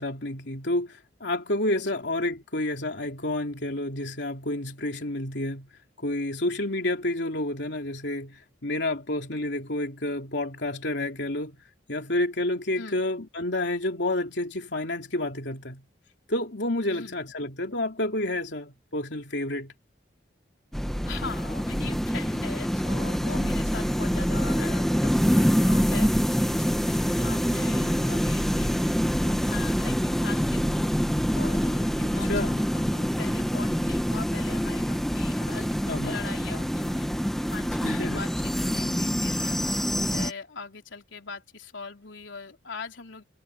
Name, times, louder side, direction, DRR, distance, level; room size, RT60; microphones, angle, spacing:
voice 1, 0.0-5.7 6.0-11.6 11.9-15.8 16.3-19.7 32.0-32.5 35.9-36.2 37.8-38.2, left 1 dB, 70° left, 3.0 m, -29 dB
voice 2, 16.9-17.2 21.1-30.9 31.3-37.1 37.5-43.2, left 4 dB, 90° left, 3.7 m, -41 dB
sound 1, 20.7-40.3, equal, ahead, 1.3 m, -25 dB
head